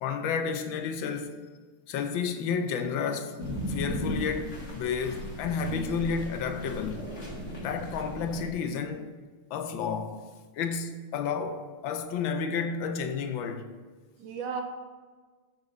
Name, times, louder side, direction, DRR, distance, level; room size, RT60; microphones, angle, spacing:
voice 1, 0.0-1.4 1.9-3.4 3.7-7.1 7.6-9.1 9.5-10.2 10.5-13.7, left 6 dB, 70° left, 1.4 m, -31 dB
sound 1, 3.4-8.5, equal, 35° left, 1.8 m, -36 dB
voice 2, 5.7-6.1 14.2-14.6, right 5 dB, 65° right, 1.6 m, -36 dB
14.0 x 5.5 x 3.9 m
omnidirectional pair, 2.4 m